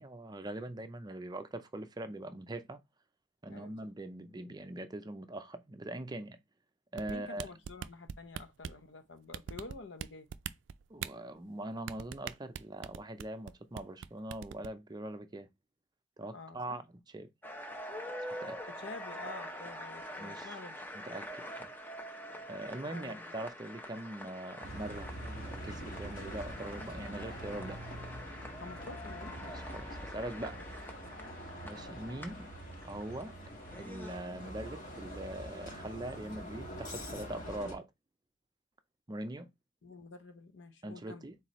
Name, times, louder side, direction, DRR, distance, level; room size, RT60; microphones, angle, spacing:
voice 1, 0.0-2.8 3.4-6.4 6.9-7.5 10.9-15.5 16.2-17.3 18.4-18.6 20.2-20.6 20.9-21.3 21.6-21.7 22.5-27.8 29.4-30.6 31.6-32.5 32.8-33.3 33.8-37.9 39.1-39.5 40.8-41.4, right 1 dB, 20° right, 0.5 m, -42 dB
sound 1, 7.0-8.8 9.3-10.1 10.3-11.1 11.9-13.5 13.8-14.1 14.3-14.7, right 8 dB, 80° right, 0.3 m, -39 dB
voice 2, 7.1-10.3 16.3-16.8 18.8-20.8 22.9-23.3 28.5-29.4 31.1-31.3 39.8-41.3, left 3 dB, 75° left, 0.7 m, -48 dB
sound 2, 17.4-34.2, equal, 10° left, 0.7 m, -46 dB
Bus, 24.6-37.7, equal, 45° left, 1.7 m, -45 dB
4.3 x 3.9 x 3.0 m
head